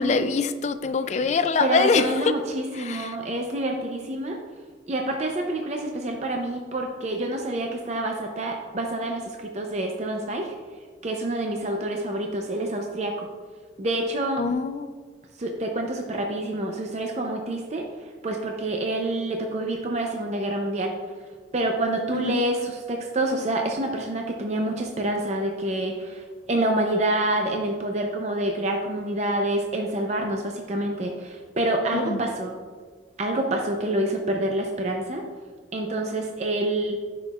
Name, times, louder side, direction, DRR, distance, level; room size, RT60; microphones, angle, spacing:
voice 1, 0.0-2.4 2.7-3.2 14.4-14.9 22.1-22.4 31.9-32.3, left 4 dB, 40° left, 11 dB, 0.3 m, -24 dB
voice 2, 1.6-4.4 4.9-10.5 11.0-13.3 13.8-14.4 15.4-20.9 21.5-32.6 33.2-35.2 35.7-37.0, right 1 dB, 40° right, 2 dB, 0.5 m, -27 dB
10.0 x 5.7 x 2.3 m, 1.5 s
head